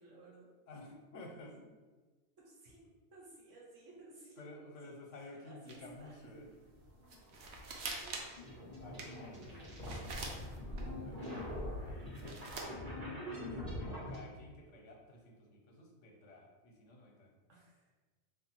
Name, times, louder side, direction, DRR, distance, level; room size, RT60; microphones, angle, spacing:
voice 1, 0.0-0.5 2.4-2.8 3.1-4.4 4.8-6.4 9.0-9.9 13.2-14.4 17.5-17.9, right 2 dB, 85° right, -4 dB, 1.4 m, -57 dB
voice 2, 0.7-1.6 4.4-6.5 8.7-9.5 10.0-17.3, left 2 dB, 80° left, 1 dB, 1.1 m, -54 dB
sound 1, 5.7-6.1 6.4-6.5 6.7-6.8 7.1-8.5 8.9-10.8 11.4-12.6, right 3 dB, 70° right, 0.9 m, -44 dB
sound 2, 6.7-14.2, left 1 dB, 35° right, 1.0 m, -43 dB
3.3 x 2.5 x 4.3 m, 1.3 s
omnidirectional pair, 1.2 m